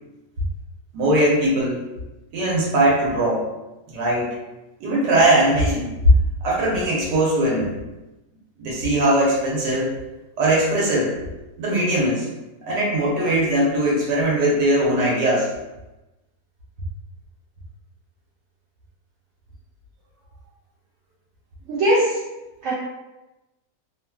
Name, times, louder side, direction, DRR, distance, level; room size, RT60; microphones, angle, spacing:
voice 1, 0.9-1.8 2.3-3.4 3.9-4.3 4.8-5.9 6.4-7.7 8.6-9.9 10.4-11.1 11.6-12.3 12.6-15.5, right 1 dB, 85° right, -5 dB, 1.4 m, -20 dB
voice 2, 21.7-22.2 22.6-22.7, right 1 dB, 65° right, -8 dB, 0.8 m, -19 dB
3.0 x 2.4 x 2.2 m, 1.0 s
omnidirectional pair, 1.8 m